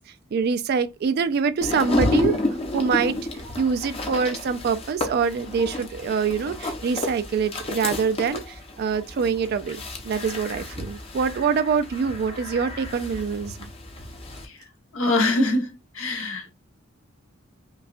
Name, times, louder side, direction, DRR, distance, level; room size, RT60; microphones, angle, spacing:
voice 1, 0.3-2.4 2.7-3.2 3.6-13.7, right 6 dB, 50° right, 0.3 m, -25 dB
sound 1, 1.6-14.4, left 2 dB, 30° left, 0.7 m, -31 dB
voice 2, 14.9-15.7 16.0-16.5, left 2 dB, 85° left, 1.1 m, -23 dB
5.3 x 2.3 x 2.4 m
head